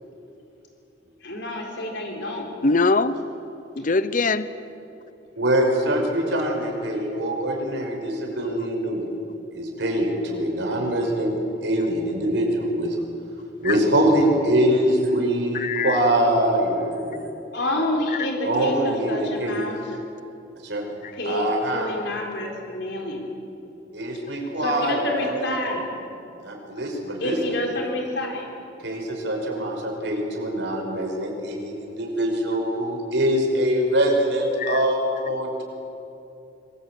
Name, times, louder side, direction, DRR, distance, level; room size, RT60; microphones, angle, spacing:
voice 1, 1.2-2.4 17.5-20.0 21.1-21.5 21.7-23.3 24.6-25.8 27.2-28.5, left 1 dB, 65° left, 0 dB, 4.1 m, -28 dB
voice 2, 2.6-3.2 3.7-4.5 13.6-13.8 15.5-16.0 21.0-21.1 34.6-34.8, left 3 dB, 45° left, 14 dB, 0.9 m, -22 dB
voice 3, 5.4-9.1 9.5-11.3 11.6-13.0 13.6-17.3 18.4-19.6 20.6-20.8 21.2-21.9 23.9-25.4 26.4-27.5 28.8-35.6, right 1 dB, 70° right, 1 dB, 5.6 m, -23 dB
26.0 x 21.5 x 8.6 m, 2.8 s
head